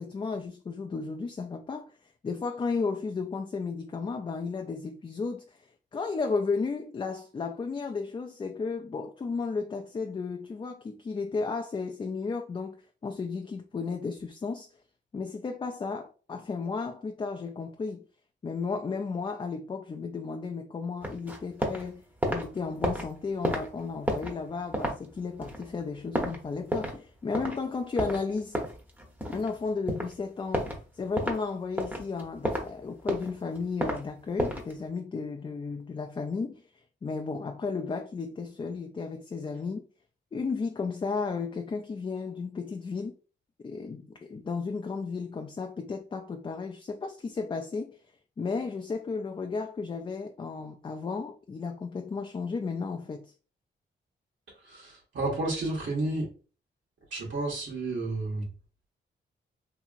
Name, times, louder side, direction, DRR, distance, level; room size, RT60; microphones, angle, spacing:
voice 1, 0.0-2.0 2.2-12.8 13.0-14.7 15.1-18.0 18.4-22.0 22.3-28.6 29.3-36.6 37.0-39.8 40.3-43.1 43.6-48.0 48.4-53.3, left 4 dB, 25° left, 0.4 m, -34 dB
sound 1, 21.0-21.9 22.1-27.1 27.3-27.6 28.0-29.5 29.9-30.1 30.5-30.8 31.2-31.4 31.8-32.7 33.0-34.0 34.4-34.7, equal, 10° right, 0.8 m, -31 dB
voice 2, 54.7-56.3 57.1-58.4, right 2 dB, 75° right, 1.1 m, -31 dB
2.8 x 2.8 x 2.4 m
cardioid pair, 80°, 19 cm